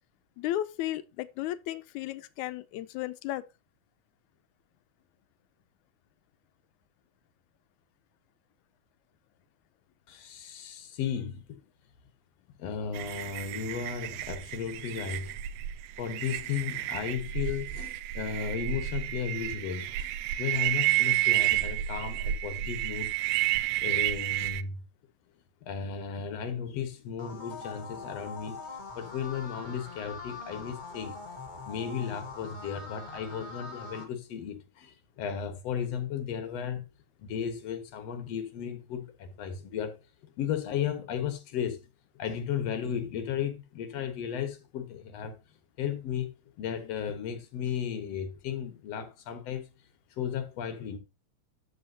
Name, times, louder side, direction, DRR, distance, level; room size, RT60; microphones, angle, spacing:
voice 1, 0.4-3.4, left 14 dB, 85° left, 2.0 m, -34 dB
voice 2, 10.1-11.4 12.6-15.3 16.0-20.1 20.4-23.1 23.8-24.8 25.6-28.6 29.0-31.2 31.7-36.8 37.2-40.0 40.4-41.8 42.2-45.4 45.8-46.3 46.6-49.7 50.2-51.0, left 8 dB, 60° left, 2.3 m, -35 dB
sound 1, 12.9-24.6, right 15 dB, 85° right, 2.0 m, -31 dB
sound 2, 27.2-34.0, left 3 dB, 35° left, 0.7 m, -43 dB
13.5 x 4.9 x 2.8 m
omnidirectional pair, 3.4 m